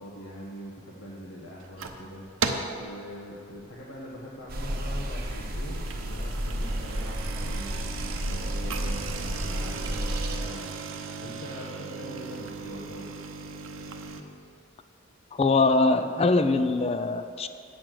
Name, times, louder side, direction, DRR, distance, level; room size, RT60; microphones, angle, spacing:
voice 1, 0.0-10.7 11.2-13.1, equal, 85° left, -4 dB, 1.3 m, -43 dB
sound 1, 1.6-2.1 2.4-2.9 3.3-3.6 4.1-4.2 4.5-4.6 5.6-14.2, right 4 dB, 90° right, 0.8 m, -36 dB
sound 2, 4.5-10.4, equal, 50° right, 0.9 m, -32 dB
voice 2, 15.3-17.5, left 3 dB, 30° left, 9 dB, 0.4 m, -23 dB
8.7 x 6.5 x 7.6 m, 2.4 s
head